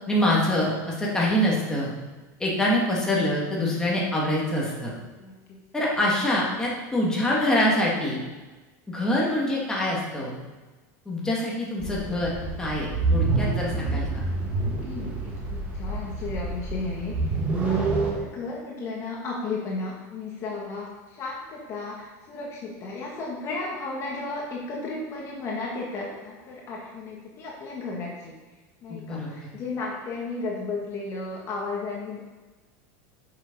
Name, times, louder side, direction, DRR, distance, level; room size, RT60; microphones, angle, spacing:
voice 1, 0.1-1.9 2.4-4.9 5.7-8.2 8.9-10.4 11.1-14.2 29.1-29.3, left 1 dB, 5° left, -4 dB, 2.1 m, -25 dB
voice 2, 5.2-5.6 14.5-28.3 28.8-32.2, left 3 dB, 30° left, -2 dB, 1.6 m, -34 dB
sound 1, 11.8-18.1, right 3 dB, 15° right, 1.9 m, -27 dB
8.8 x 6.5 x 5.3 m, 1.2 s
supercardioid pair, 155°, 9 cm